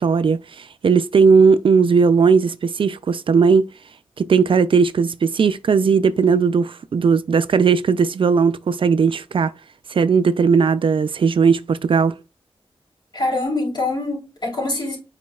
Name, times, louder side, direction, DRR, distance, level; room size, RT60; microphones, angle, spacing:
voice 1, 0.0-3.7 4.2-9.5 9.9-12.2, right 5 dB, 60° right, 0.4 m, -17 dB
voice 2, 13.1-15.0, left 2 dB, 50° left, 3.8 m, -24 dB
8.3 x 4.9 x 2.3 m
wide cardioid pair, 90°, 10 cm